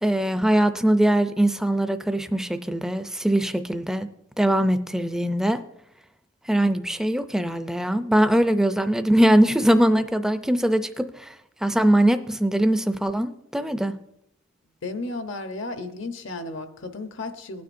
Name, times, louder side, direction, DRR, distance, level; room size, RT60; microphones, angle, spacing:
voice 1, 0.0-4.1 4.4-5.6 6.5-11.3 11.6-13.9, right 1 dB, 5° right, 10 dB, 0.4 m, -21 dB
voice 2, 14.8-17.6, left 2 dB, 70° left, 8 dB, 0.8 m, -33 dB
18.5 x 9.3 x 2.6 m, 0.80 s
head